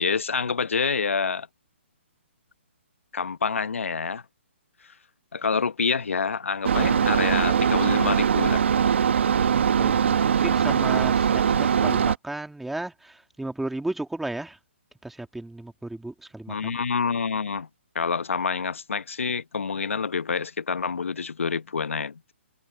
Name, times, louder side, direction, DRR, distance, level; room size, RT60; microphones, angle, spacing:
voice 1, 0.0-1.5 3.1-4.2 5.3-8.6 16.5-17.7 17.9-22.3, left 5 dB, 90° left, 1.0 m, -27 dB
sound 1, 6.6-12.2, right 7 dB, 65° right, 1.3 m, -21 dB
voice 2, 9.5-14.6 15.0-16.8, right 2 dB, ahead, 2.1 m, -34 dB
hypercardioid pair, 155°, 7 cm